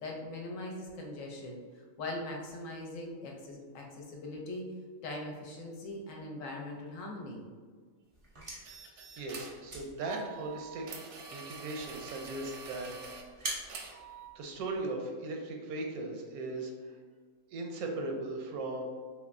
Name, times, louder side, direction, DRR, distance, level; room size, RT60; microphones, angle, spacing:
voice 1, 0.0-1.6 2.0-4.7 5.0-7.5, left 2 dB, 70° left, 0 dB, 0.9 m, -41 dB
sound 1, 8.1-14.9, right 1 dB, 40° right, 0.4 m, -46 dB
sound 2, 8.6-9.6 10.0-13.2 13.7-14.3, right 5 dB, 65° right, 0.8 m, -46 dB
voice 2, 9.2-10.8 11.3-12.9 13.3-13.8 14.3-16.7 17.5-18.8, right 2 dB, 85° right, 2 dB, 1.1 m, -38 dB
3.3 x 3.1 x 2.4 m, 1.5 s
omnidirectional pair, 1.5 m